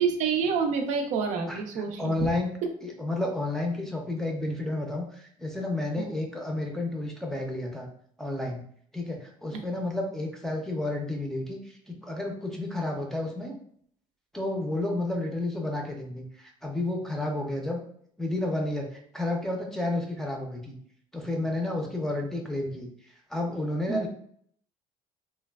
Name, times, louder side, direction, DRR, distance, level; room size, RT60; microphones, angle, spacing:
voice 1, 0.0-2.3 2.6-2.7 6.0-6.1 9.5-9.6 23.9-24.0, right 6 dB, 65° right, 4 dB, 0.5 m, -28 dB
voice 2, 2.0-2.5 2.8-7.9 8.2-8.6 8.9-13.5 14.3-17.8 18.2-20.7 21.1-22.9 23.3-24.1, left 2 dB, 5° left, 0 dB, 0.5 m, -31 dB
3.1 x 2.2 x 2.2 m, 0.63 s
cardioid pair, 120°, 13 cm